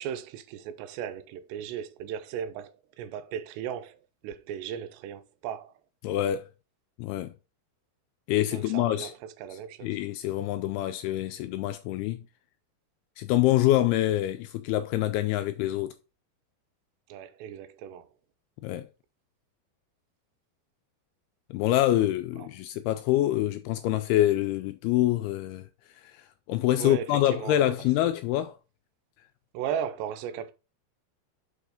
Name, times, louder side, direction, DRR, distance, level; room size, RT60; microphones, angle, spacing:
voice 1, 0.0-5.7 8.5-9.1 9.4-10.0 17.1-18.1 22.4-22.5 26.8-27.7 28.0-28.1 29.5-30.5, right 9 dB, 85° right, 2.8 m, -36 dB
voice 2, 6.0-6.5 7.0-7.3 8.3-9.1 9.5-12.2 13.2-15.9 18.6-18.9 21.5-25.7 26.0-28.6, left 14 dB, 85° left, 2.3 m, -26 dB
6.1 x 4.7 x 4.9 m
omnidirectional pair, 4.9 m